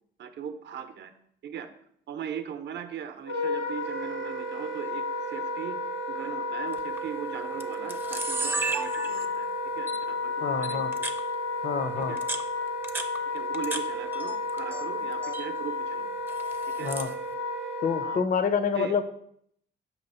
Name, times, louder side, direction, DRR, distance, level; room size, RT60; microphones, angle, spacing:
voice 1, 0.2-1.1 1.4-1.7 2.1-5.8 6.1-9.5 9.8-11.1 12.0-12.2 13.3-16.1 16.7-16.9 18.0-18.2 18.7-19.0, right 8 dB, 60° right, 8 dB, 0.6 m, -39 dB
Wind instrument woodwind instrument, 3.2-18.2, left 2 dB, 75° left, 1.3 m, -32 dB
Camera, 6.7-7.0 7.6-7.7 7.9-9.4 9.9-10.0 10.6-11.2 12.0-13.8 14.1-14.8 15.1-15.5 16.3-17.1, right 3 dB, 10° right, 0.5 m, -33 dB
voice 2, 10.4-10.9 11.6-12.2 16.8-17.1 17.8-19.0, left 6 dB, 45° left, 9 dB, 0.5 m, -27 dB
6.1 x 2.9 x 5.4 m, 0.67 s
cardioid pair, 90°, 20 cm